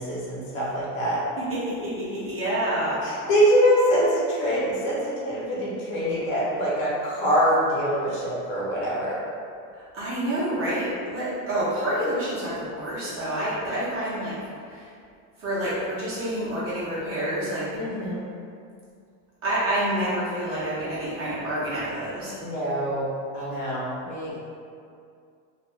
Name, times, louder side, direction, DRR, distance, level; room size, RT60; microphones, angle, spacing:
voice 1, 0.0-1.2 3.0-9.2 17.7-18.2 22.4-24.4, equal, 55° left, -7 dB, 1.0 m, -24 dB
voice 2, 1.4-3.0 9.7-14.4 14.7-14.9 15.4-17.7 19.4-22.4, right 1 dB, 30° right, -9 dB, 0.9 m, -28 dB
2.5 x 2.4 x 3.1 m, 2.3 s
supercardioid pair, 145°, 42 cm